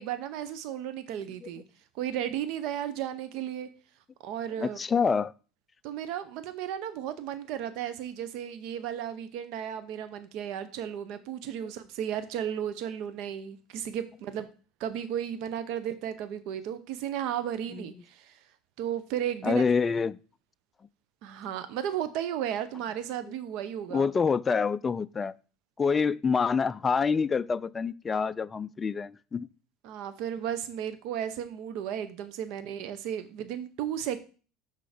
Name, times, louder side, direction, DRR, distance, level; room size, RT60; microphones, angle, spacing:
voice 1, 0.0-1.6 1.9-3.7 4.2-4.8 5.8-14.5 14.8-18.4 18.8-19.6 21.2-24.1 29.8-34.2, right 10 dB, 65° right, 0.7 m, -34 dB
voice 2, 4.6-5.3 17.7-17.9 19.4-20.2 23.9-25.3 25.8-29.5, left 5 dB, 20° left, 0.3 m, -26 dB
6.3 x 5.5 x 5.0 m
supercardioid pair, 130°, 0 cm